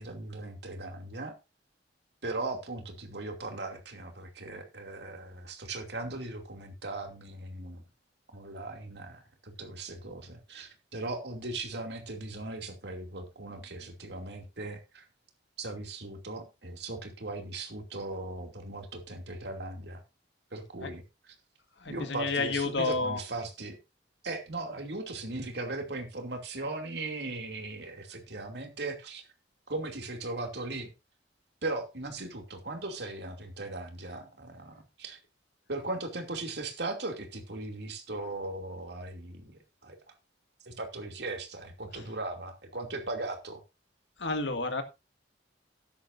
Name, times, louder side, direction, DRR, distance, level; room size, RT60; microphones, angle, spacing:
voice 1, 0.0-1.4 2.2-7.8 8.3-15.0 15.6-20.0 20.5-21.3 21.9-23.8 24.2-29.2 29.7-30.9 31.6-35.2 35.7-40.0 40.6-43.6, right 2 dB, 65° right, 2.7 m, -38 dB
voice 2, 21.8-23.2 44.2-44.8, left 3 dB, 75° left, 1.8 m, -30 dB
13.5 x 10.5 x 2.6 m
head